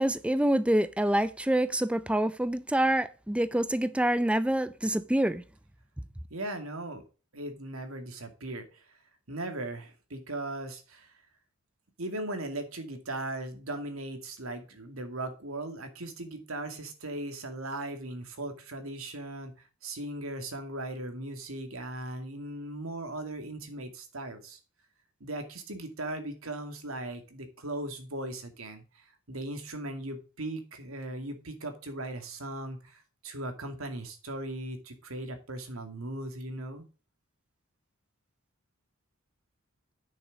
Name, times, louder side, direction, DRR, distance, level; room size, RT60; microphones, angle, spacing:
voice 1, 0.0-5.4, right 1 dB, 5° right, 0.5 m, -26 dB
voice 2, 6.3-7.0 7.3-9.0 9.3-11.1 12.0-24.6 25.2-36.9, right 1 dB, 90° right, 2.4 m, -38 dB
8.9 x 6.8 x 5.0 m
head